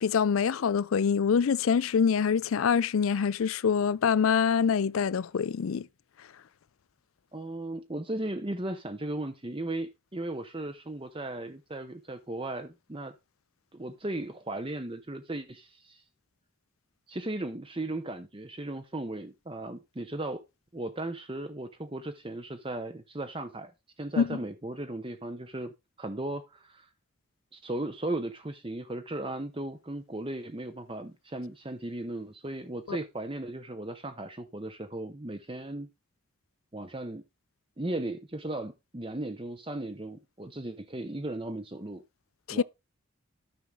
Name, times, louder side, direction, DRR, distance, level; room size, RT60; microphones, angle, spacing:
voice 1, 0.0-5.9 24.2-24.4 32.9-33.0 42.5-42.6, left 6 dB, 80° left, 0.4 m, -25 dB
voice 2, 7.3-13.1 13.7-16.0 17.1-20.4 20.7-23.7 24.0-25.7 26.0-26.9 27.5-35.9 36.7-37.2 37.8-42.0 42.5-42.6, right 1 dB, 25° right, 0.8 m, -36 dB
13.0 x 6.0 x 3.8 m
head